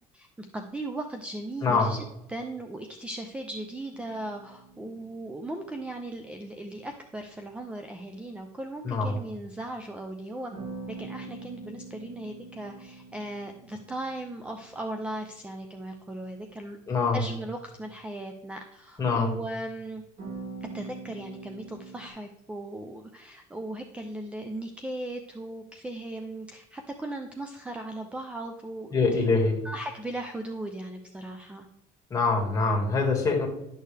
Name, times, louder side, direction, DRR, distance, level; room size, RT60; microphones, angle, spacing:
voice 1, 0.1-2.0 2.3-10.5 10.9-16.8 17.1-20.0 20.7-31.7, right 1 dB, 5° right, 5 dB, 0.6 m, -37 dB
voice 2, 1.6-1.9 8.8-9.2 16.9-17.2 19.0-19.3 28.9-29.6 32.1-33.5, left 4 dB, 20° left, -1 dB, 2.1 m, -24 dB
sound 1, 3.9-6.2 10.5-15.3 20.2-22.1, right 4 dB, 40° right, 3.1 m, -44 dB
11.5 x 6.5 x 3.4 m, 0.87 s
cardioid pair, 165°, 16 cm